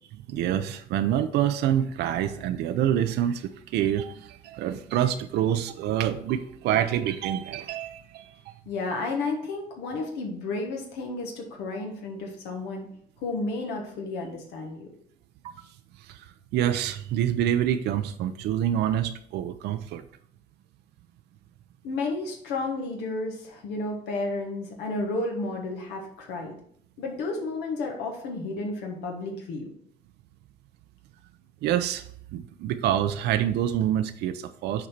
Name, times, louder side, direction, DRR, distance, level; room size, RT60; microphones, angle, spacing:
voice 1, 0.1-8.5 15.4-15.7 16.0-20.0 31.6-32.1 32.3-34.9, right 10 dB, 80° right, 9 dB, 0.5 m, -27 dB
voice 2, 8.7-12.9 13.2-14.9 21.8-26.5 27.0-29.7, left 3 dB, 90° left, 2 dB, 1.4 m, -32 dB
7.5 x 4.2 x 4.4 m, 0.63 s
cardioid pair, 110°, 17 cm